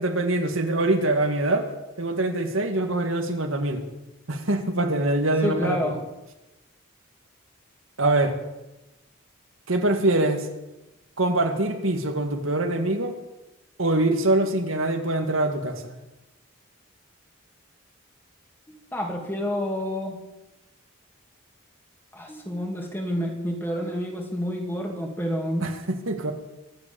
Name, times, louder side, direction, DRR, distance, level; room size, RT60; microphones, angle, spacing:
voice 1, 0.0-1.7 2.0-3.8 4.3-5.9 8.0-8.4 9.7-10.5 11.2-13.2 13.8-15.9 25.6-26.3, right 2 dB, 70° right, 5 dB, 2.0 m, -24 dB
voice 2, 5.4-6.0 18.9-20.2 22.1-25.6, equal, 10° left, 1 dB, 2.7 m, -29 dB
24.0 x 8.4 x 7.1 m, 0.99 s
head